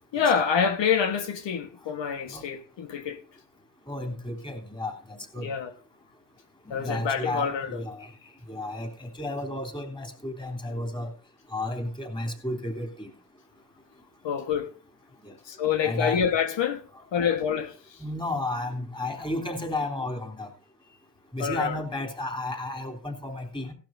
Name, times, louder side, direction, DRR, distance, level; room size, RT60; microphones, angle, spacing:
voice 1, 0.1-3.2 5.4-5.7 6.7-7.7 14.2-14.7 15.5-16.8 17.1-17.7 21.4-21.8, left 7 dB, 75° left, 1.4 m, -26 dB
voice 2, 3.9-5.5 6.7-8.1 8.5-11.1 11.5-13.1 15.2-15.3 15.8-16.2 16.9-17.0 18.0-20.5 21.3-23.7, left 2 dB, 10° left, 3.3 m, -33 dB
17.0 x 12.0 x 2.6 m
cardioid pair, 100°, 44 cm